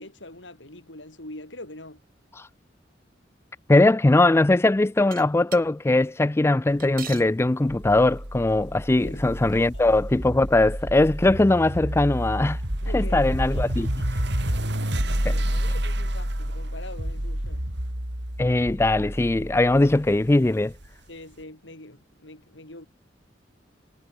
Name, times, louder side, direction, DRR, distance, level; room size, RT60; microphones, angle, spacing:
voice 1, 0.0-2.0 9.0-9.8 12.8-13.9 14.5-17.6 21.1-22.9, left 1 dB, 75° left, 6.3 m, -44 dB
voice 2, 3.7-12.6 12.9-13.9 15.2-15.3 18.4-20.7, left 2 dB, 15° left, 0.4 m, -20 dB
sound 1, 5.1-5.6 6.8-7.3 8.2-8.3 8.5-8.6 9.5-9.6, right 10 dB, 50° right, 3.0 m, -38 dB
sound 2, 7.7-20.9, equal, 65° right, 5.4 m, -29 dB
head